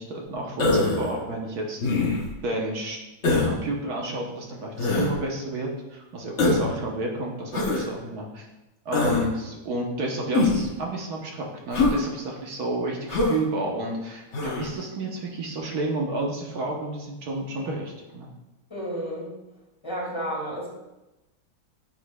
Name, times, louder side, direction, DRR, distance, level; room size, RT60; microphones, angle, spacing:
voice 1, 0.0-1.8 2.4-3.0 3.4-8.5 8.8-18.3, right 2 dB, 60° right, 0 dB, 1.3 m, -31 dB
Human voice, 0.6-1.1 1.8-2.3 3.2-3.5 4.8-5.1 6.4-6.7 7.5-7.8 8.9-9.3 10.3-10.7 11.7-12.0 13.1-13.4 14.3-14.7, left 3 dB, 50° left, 1.0 m, -22 dB
voice 2, 18.7-19.3 19.8-20.7, equal, 15° left, -4 dB, 1.8 m, -31 dB
9.4 x 4.9 x 2.2 m, 0.99 s
omnidirectional pair, 2.1 m